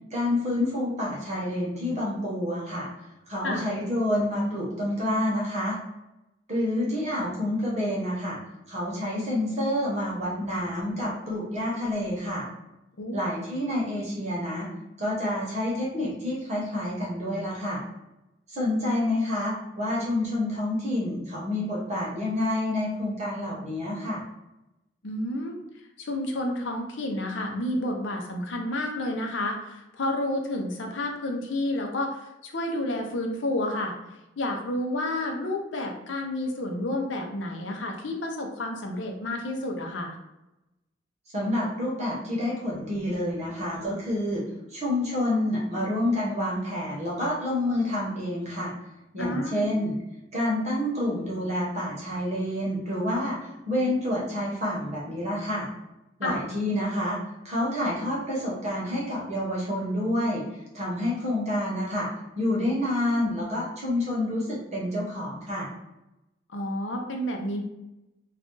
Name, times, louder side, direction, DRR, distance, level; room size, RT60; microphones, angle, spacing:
voice 1, 0.1-2.9 3.3-5.8 6.5-8.4 8.7-12.5 13.1-14.7 15.0-17.8 18.5-24.2 41.3-44.4 44.7-48.7 49.1-49.9 50.3-55.7 56.2-57.2 57.4-62.1 62.4-65.7, left 1 dB, 35° right, -4 dB, 1.0 m, -28 dB
voice 2, 25.0-25.6 26.0-33.9 34.4-40.1 49.2-49.7 56.2-56.4 66.5-67.6, left 1 dB, 75° left, 2 dB, 0.6 m, -30 dB
2.5 x 2.4 x 3.7 m, 0.95 s
head